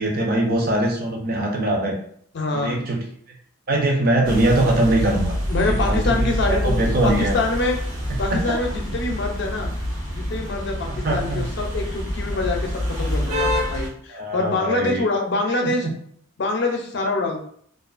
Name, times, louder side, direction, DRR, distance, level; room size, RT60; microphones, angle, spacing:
voice 1, 0.0-2.0 2.5-3.0 3.7-5.4 5.7-7.3 8.3-8.6 10.9-11.5 12.3-12.4 14.1-15.1 15.8-15.9, right 1 dB, 45° right, 0 dB, 0.6 m, -22 dB
voice 2, 2.3-2.8 5.5-6.8 7.0-7.8 8.2-9.7 10.1-15.9 16.4-17.4, left 2 dB, 55° left, 2 dB, 0.5 m, -25 dB
sound 1, 4.2-13.9, equal, 90° right, 1.1 m, -26 dB
2.4 x 2.4 x 2.4 m, 0.63 s
head